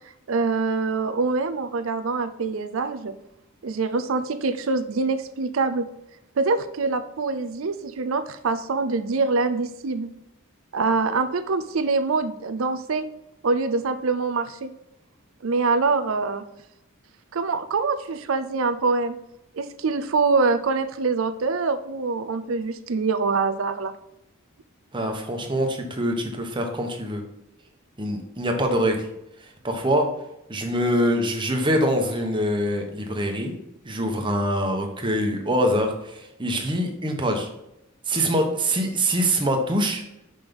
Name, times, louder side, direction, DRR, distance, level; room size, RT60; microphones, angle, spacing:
voice 1, 0.3-3.1 3.6-5.9 6.4-10.1 10.7-13.1 13.4-14.7 15.4-16.4 17.3-19.1 19.5-23.9, right 4 dB, 70° right, 10 dB, 0.5 m, -24 dB
voice 2, 24.9-27.2 28.0-29.1 29.6-30.1 30.5-33.5 33.8-37.5 38.1-40.2, equal, 25° right, 3 dB, 1.2 m, -24 dB
6.0 x 5.4 x 5.2 m, 0.84 s
head